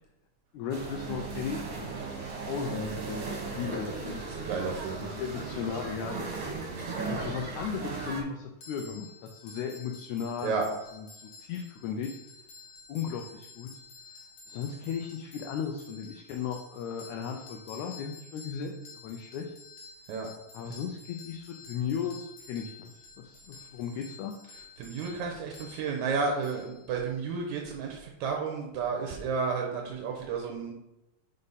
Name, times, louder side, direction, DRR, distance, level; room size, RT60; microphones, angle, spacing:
voice 1, 0.5-2.1 2.4-4.2 4.9-6.5 7.0-10.6 10.9-12.2 12.9-13.7 14.5-19.5 20.5-24.3, left 7 dB, 85° left, 3 dB, 2.0 m, -36 dB
sound 1, 0.7-8.2, right 4 dB, 60° right, 2.3 m, -36 dB
voice 2, 4.5-5.2 10.4-10.6 20.1-20.3 24.8-30.7, right 5 dB, 80° right, 1 dB, 2.1 m, -32 dB
sound 2, 8.6-27.4, left 4 dB, 65° left, 2.6 m, -51 dB
5.4 x 5.3 x 4.0 m, 0.93 s
omnidirectional pair, 3.3 m